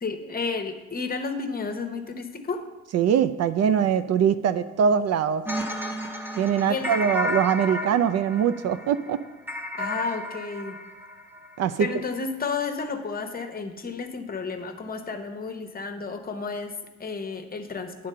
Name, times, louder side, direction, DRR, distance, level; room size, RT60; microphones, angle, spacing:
voice 1, 0.0-2.6 6.7-7.0 9.7-10.8 11.8-18.1, left 4 dB, 30° left, 6 dB, 0.9 m, -32 dB
voice 2, 2.9-5.4 6.4-9.2 11.6-11.9, right 8 dB, 60° right, 12 dB, 0.4 m, -22 dB
sound 1, 5.5-11.6, left 1 dB, 5° right, 0.9 m, -33 dB
8.8 x 3.8 x 6.7 m, 1.1 s
cardioid pair, 90°, 30 cm